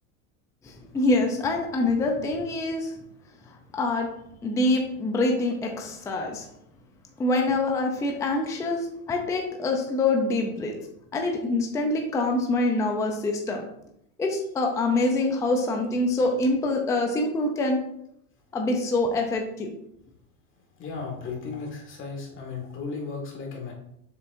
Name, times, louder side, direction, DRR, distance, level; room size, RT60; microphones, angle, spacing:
voice 1, 0.6-2.9 3.5-4.1 4.4-6.5 7.2-10.8 11.1-13.7 14.2-17.8 18.5-19.7, left 2 dB, 5° left, 2 dB, 0.5 m, -25 dB
voice 2, 20.8-23.7, left 4 dB, 30° left, 1 dB, 1.9 m, -35 dB
6.8 x 6.7 x 2.7 m, 0.75 s
supercardioid pair, 140°, 42 cm